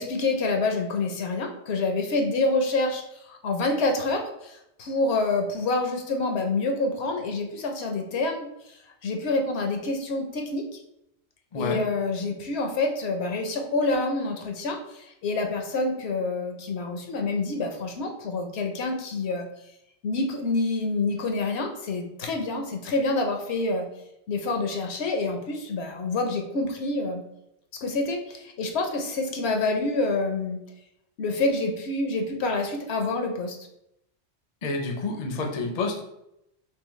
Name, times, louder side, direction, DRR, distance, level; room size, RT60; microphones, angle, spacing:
voice 1, 0.0-8.7 9.0-10.8 11.5-19.5 20.0-23.9 24.3-27.2 27.8-30.6 31.2-33.6, left 3 dB, 70° left, 4 dB, 0.9 m, -27 dB
voice 2, 11.5-11.8 34.6-36.0, left 3 dB, 45° left, 2 dB, 0.6 m, -29 dB
3.7 x 3.0 x 3.0 m, 0.80 s
omnidirectional pair, 1.2 m